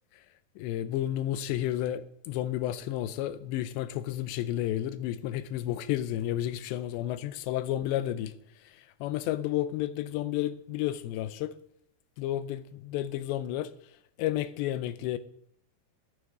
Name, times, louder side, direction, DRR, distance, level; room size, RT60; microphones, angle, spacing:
voice 1, 0.6-8.3 9.0-11.5 12.2-13.7 14.2-15.2, left 13 dB, 85° left, 2.9 m, -31 dB
14.0 x 9.9 x 3.8 m
omnidirectional pair, 5.0 m